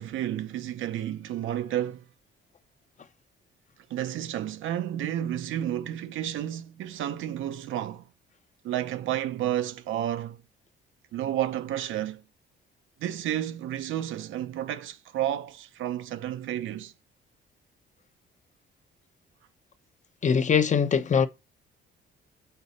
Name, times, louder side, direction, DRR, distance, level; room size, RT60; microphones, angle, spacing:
voice 1, 0.0-2.0 3.9-8.0 8.6-10.4 11.1-12.2 13.0-16.9, right 11 dB, 80° right, 0.7 m, -31 dB
voice 2, 20.2-21.3, left 6 dB, 35° left, 0.7 m, -22 dB
6.9 x 4.0 x 4.1 m
cardioid pair, 90°, 20 cm